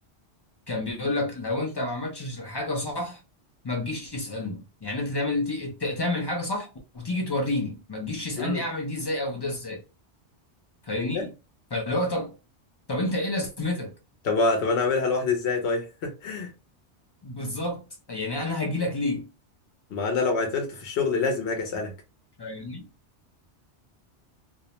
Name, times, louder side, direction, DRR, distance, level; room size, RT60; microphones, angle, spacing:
voice 1, 0.7-3.2 3.6-9.8 10.9-11.3 11.7-12.3 12.9-13.9 17.2-17.8 18.1-19.3 22.4-22.8, left 2 dB, 40° left, 0.4 m, -29 dB
voice 2, 14.2-16.5 19.9-21.9, left 4 dB, 75° left, 0.9 m, -26 dB
2.6 x 2.0 x 2.8 m
omnidirectional pair, 1.1 m